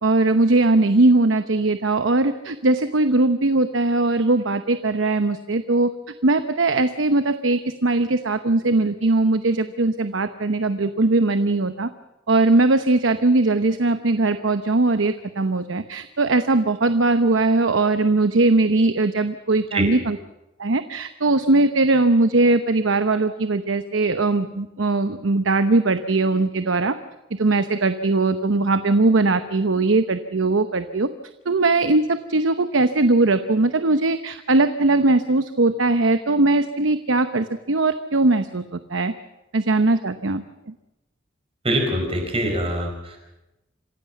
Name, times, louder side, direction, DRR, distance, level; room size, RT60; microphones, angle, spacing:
voice 1, 0.0-5.9 6.2-11.9 12.3-20.2 20.6-26.9 27.4-31.1 31.5-39.1 39.5-40.7, right 2 dB, 90° right, 10 dB, 0.9 m, -20 dB
voice 2, 41.6-43.2, right 1 dB, 30° right, 3 dB, 5.1 m, -24 dB
26.5 x 16.0 x 7.3 m, 0.96 s
head